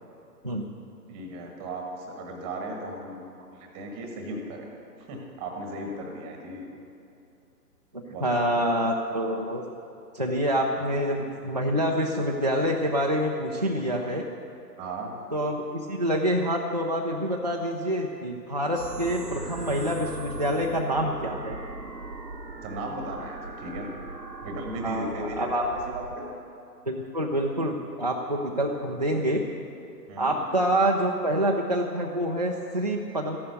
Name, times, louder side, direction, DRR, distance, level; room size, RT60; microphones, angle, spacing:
voice 1, 1.1-3.2 3.5-4.7 5.0-6.7 8.1-8.5 10.7-10.9 14.8-15.1 22.6-23.9 24.4-26.3 30.1-30.4, right 1 dB, 10° right, 2 dB, 1.1 m, -36 dB
voice 2, 7.9-9.6 10.1-14.2 15.3-21.6 24.8-25.6 26.9-29.4 30.2-33.4, equal, 30° right, -2 dB, 0.4 m, -27 dB
sound 1, 18.7-26.2, right 3 dB, 85° right, 1.2 m, -39 dB
14.0 x 11.5 x 6.4 m, 2.8 s
figure-of-eight pair, 130°, 50 cm